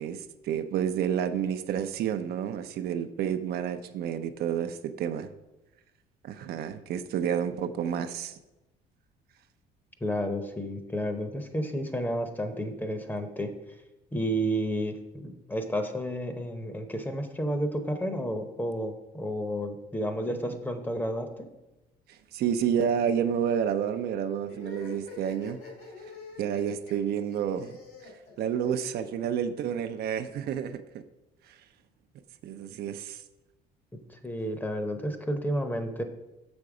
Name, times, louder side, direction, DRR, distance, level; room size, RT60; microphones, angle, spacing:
voice 1, 0.0-5.3 6.2-8.3 22.1-25.6 26.4-27.8 28.4-31.0 31.5-31.6 32.4-33.2, right 8 dB, 70° right, 9 dB, 0.5 m, -30 dB
voice 2, 10.0-13.5 14.1-21.5 34.1-36.0, equal, 10° left, 7 dB, 0.8 m, -31 dB
sound 1, 24.5-29.1, left 4 dB, 65° left, 2.4 m, -45 dB
6.7 x 5.2 x 4.8 m, 0.99 s
cardioid pair, 110°, 17 cm